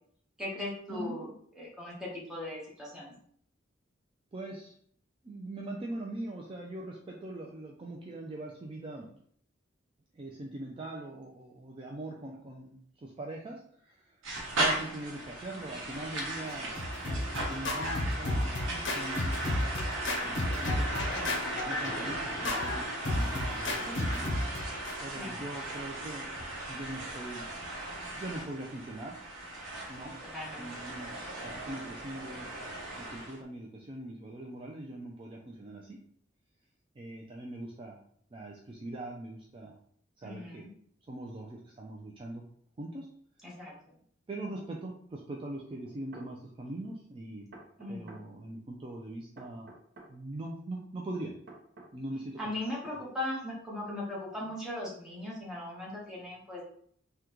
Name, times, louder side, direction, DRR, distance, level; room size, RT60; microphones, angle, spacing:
voice 1, 0.4-1.3 1.6-3.1 21.1-21.4 25.2-25.3 30.3-30.7 40.2-40.7 43.4-43.7 47.8-48.2 52.4-56.7, left 1 dB, 5° right, -6 dB, 1.0 m, -38 dB
voice 2, 0.9-1.2 4.3-4.7 5.2-9.1 10.1-14.2 14.5-16.7 17.0-19.7 20.2-21.0 21.6-22.9 23.1-24.3 25.0-27.5 28.1-29.2 29.9-30.2 30.6-32.5 33.0-36.0 37.0-38.0 38.3-39.8 40.2-40.7 41.1-42.4 42.8-43.1 44.3-47.5 47.9-49.7 50.1-51.3 51.9-53.0, right 2 dB, 25° right, -1 dB, 0.3 m, -42 dB
sound 1, 14.2-33.4, right 1 dB, 80° right, 0.9 m, -37 dB
Scratching (performance technique), 16.5-25.0, left 1 dB, 65° left, 0.6 m, -33 dB
sound 2, 44.6-44.7 45.8-46.3 47.5-48.3 49.4-50.1 51.5-51.9 52.8-53.0, right 2 dB, 55° right, 0.7 m, -51 dB
3.6 x 2.2 x 2.9 m, 0.63 s
head